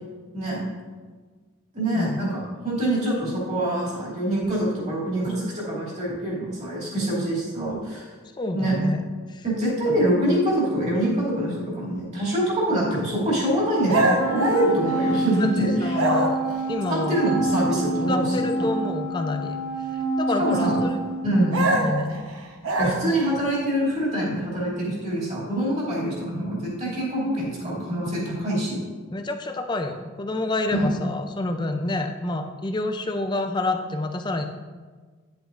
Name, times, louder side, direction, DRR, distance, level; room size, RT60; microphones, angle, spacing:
voice 1, 1.7-8.1 8.5-8.8 9.4-15.9 16.9-18.7 20.4-20.9 21.2-21.8 22.8-28.8 30.7-30.9, right 1 dB, 30° right, -6 dB, 2.6 m, -25 dB
voice 2, 8.3-9.4 15.4-16.4 16.7-17.2 17.7-17.8 18.1-19.6 19.9-21.0 21.3-22.2 29.1-34.4, left 2 dB, 20° left, 6 dB, 0.4 m, -28 dB
Old beagle mutt barking and whining, 13.9-15.5 15.9-16.6 21.5-23.3, right 2 dB, 70° right, 1.0 m, -24 dB
Wind instrument woodwind instrument, 14.2-21.8, right 1 dB, 45° left, 1.1 m, -28 dB
10.0 x 7.8 x 2.5 m, 1.5 s
head